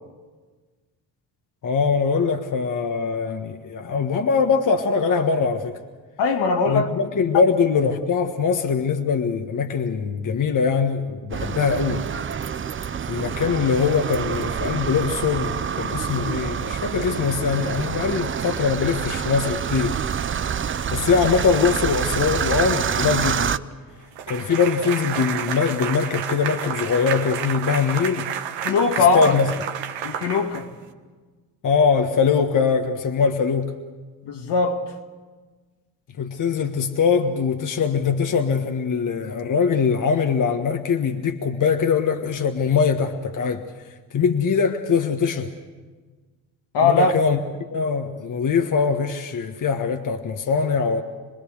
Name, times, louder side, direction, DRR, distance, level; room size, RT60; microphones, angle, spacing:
voice 1, 1.6-5.8 6.7-12.0 13.1-20.0 20.9-23.5 24.3-28.3 29.1-29.5 31.6-33.7 36.2-43.6 44.1-45.5 46.8-47.4 47.7-51.0, left 5 dB, 45° left, 1.5 m, -22 dB
voice 2, 6.2-6.9 28.6-29.3 30.0-30.7 34.2-34.9 46.7-47.1, left 4 dB, 70° left, 2.2 m, -20 dB
sound 1, 11.3-23.6, right 7 dB, 30° right, 0.7 m, -27 dB
sound 2, 24.2-30.9, right 9 dB, 80° right, 1.6 m, -30 dB
27.5 x 20.0 x 6.6 m
supercardioid pair, 70°, 43 cm